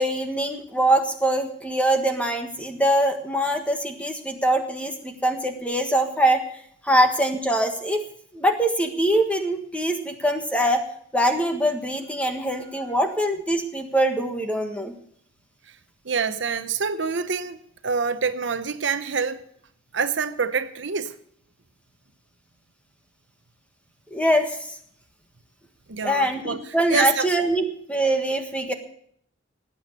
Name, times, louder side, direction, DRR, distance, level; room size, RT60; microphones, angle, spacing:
voice 1, 0.0-6.4 6.8-8.0 8.3-10.8 11.1-14.9 24.1-24.8 26.0-28.7, right 1 dB, 5° left, 1.5 m, -23 dB
voice 2, 16.0-19.4 19.9-21.1 25.9-26.6 26.9-27.3, right 5 dB, 60° right, 0.8 m, -26 dB
18.0 x 8.6 x 6.6 m
head